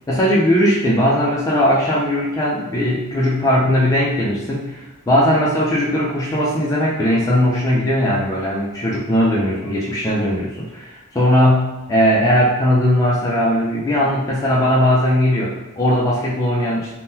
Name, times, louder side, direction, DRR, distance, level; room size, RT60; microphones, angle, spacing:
voice 1, 0.1-16.9, equal, 15° left, -6 dB, 0.4 m, -18 dB
3.6 x 2.1 x 2.7 m, 1.1 s
head